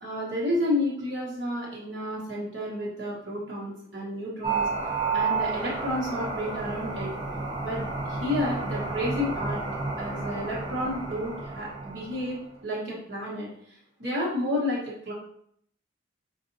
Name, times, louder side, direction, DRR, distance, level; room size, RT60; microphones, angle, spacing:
voice 1, 0.0-4.6 5.1-7.1 7.6-9.6 10.0-13.5 14.0-15.1, left 1 dB, 75° right, -6 dB, 1.3 m, -31 dB
sound 1, 4.4-12.4, right 4 dB, 25° right, 0.6 m, -31 dB
4.8 x 2.6 x 2.7 m, 0.68 s
head